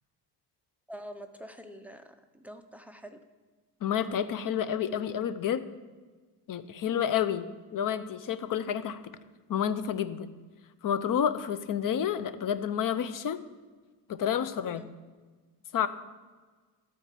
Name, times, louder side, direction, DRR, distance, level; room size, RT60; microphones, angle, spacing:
voice 1, 0.9-3.2 14.6-14.9, equal, 5° right, 7 dB, 0.6 m, -46 dB
voice 2, 3.8-5.6 6.5-9.0 9.5-10.3 10.8-13.4 14.1-14.8 15.7-15.9, left 9 dB, 50° left, 13 dB, 0.6 m, -29 dB
12.5 x 4.6 x 7.5 m, 1.4 s
cardioid pair, 135°, 42 cm